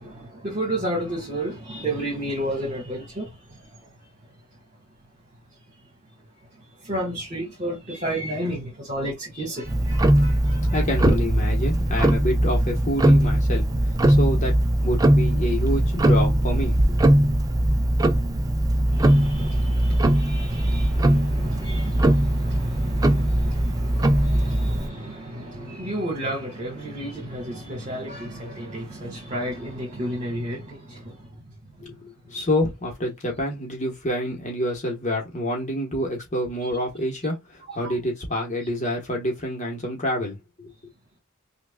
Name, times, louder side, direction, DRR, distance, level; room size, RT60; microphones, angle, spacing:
voice 1, 0.0-3.6 6.8-11.1 18.9-31.2 37.8-37.9, right 1 dB, 35° right, 1.5 m, -31 dB
Tick-tock, 9.7-24.9, right 1 dB, 15° right, 0.4 m, -20 dB
voice 2, 10.7-13.6 14.1-16.8 31.8-32.0 32.3-40.7, equal, 35° left, 1.1 m, -27 dB
5.8 x 2.3 x 2.2 m
head